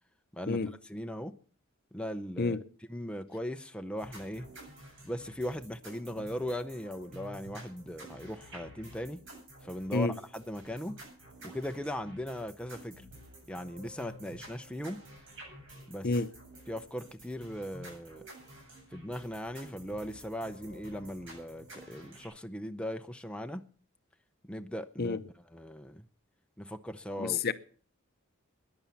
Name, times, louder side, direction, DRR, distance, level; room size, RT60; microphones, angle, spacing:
voice 1, 0.3-1.4 1.9-2.6 2.9-4.5 5.0-9.2 9.6-11.0 11.4-13.0 13.5-15.0 15.9-16.1 16.7-18.2 18.9-23.6 24.4-25.2 25.5-26.0 26.6-27.5, equal, 5° left, 0.6 m, -39 dB
sound 1, 4.0-22.3, right 1 dB, 60° right, 7.9 m, -51 dB
voice 2, 27.2-27.5, left 3 dB, 50° left, 0.7 m, -29 dB
14.0 x 10.5 x 7.1 m
head